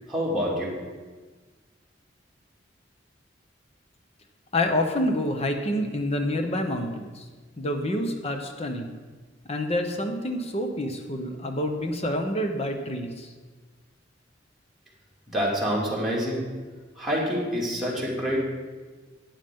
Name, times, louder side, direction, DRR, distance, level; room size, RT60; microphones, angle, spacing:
voice 1, 0.1-0.7 15.3-16.4 17.0-18.4, equal, ahead, -6 dB, 2.4 m, -26 dB
voice 2, 4.5-7.2 7.6-9.0 9.5-13.3, left 1 dB, 35° left, 4 dB, 0.9 m, -27 dB
12.0 x 9.1 x 3.7 m, 1.4 s
head